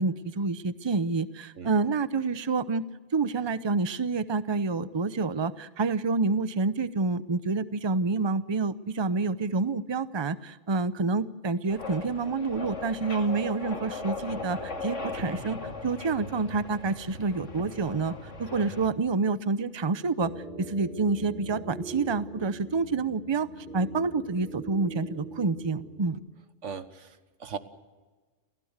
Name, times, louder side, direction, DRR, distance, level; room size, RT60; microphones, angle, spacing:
voice 1, 0.0-2.9 3.1-20.3 20.6-26.2, right 4 dB, 25° right, 14 dB, 0.7 m, -28 dB
sound 1, 11.7-18.9, left 3 dB, 75° left, 2.5 m, -38 dB
sound 2, 20.2-26.1, right 2 dB, 50° right, 4.9 m, -42 dB
voice 2, 26.6-27.6, right 6 dB, 75° right, 11 dB, 1.7 m, -38 dB
29.5 x 15.5 x 8.1 m, 1.3 s
omnidirectional pair, 1.3 m